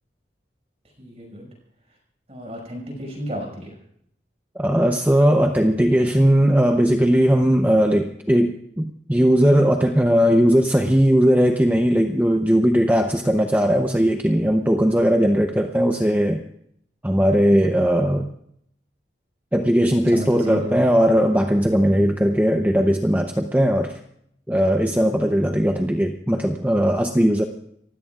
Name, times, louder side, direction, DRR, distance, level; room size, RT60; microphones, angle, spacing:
voice 1, 1.0-1.5 2.3-3.8 19.9-20.9, equal, 35° right, 0 dB, 5.8 m, -32 dB
voice 2, 4.6-16.4 17.0-18.3 19.5-24.0 24.5-27.5, equal, 10° right, 4 dB, 0.7 m, -18 dB
27.5 x 16.0 x 2.4 m, 0.70 s
head